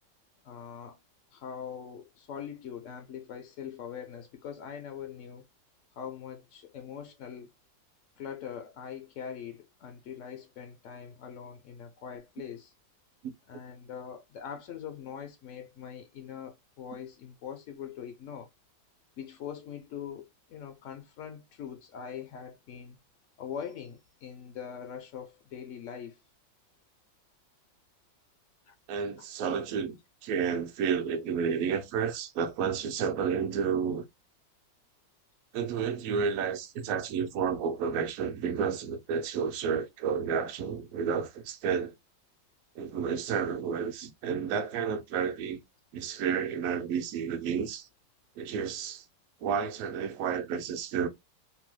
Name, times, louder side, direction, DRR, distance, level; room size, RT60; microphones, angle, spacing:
voice 1, 0.4-1.0 1.3-5.4 6.0-7.5 8.2-12.7 13.5-18.5 19.2-23.0 23.4-26.2 28.7-28.8, left 8 dB, 75° left, 0.7 m, -42 dB
voice 2, 28.9-34.0 35.5-41.9 42.8-45.6 45.9-47.9 48.4-49.0 49.4-51.1, right 6 dB, 70° right, 0.8 m, -31 dB
3.0 x 2.2 x 3.0 m
omnidirectional pair, 1.9 m